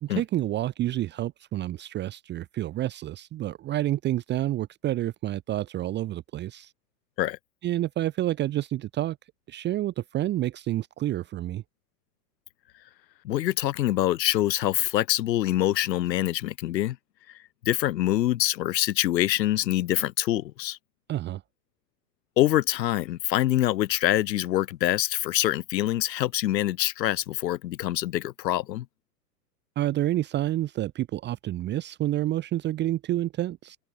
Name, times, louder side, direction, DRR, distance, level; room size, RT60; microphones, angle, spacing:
voice 1, 0.0-6.7 7.6-9.2 9.5-11.6 21.1-21.4 29.8-33.8, right 14 dB, 20° right, 1.0 m, -29 dB
voice 2, 13.2-17.0 17.3-20.8 22.4-28.9, left 14 dB, 80° left, 1.1 m, -25 dB
open air
hypercardioid pair, 140°, 49 cm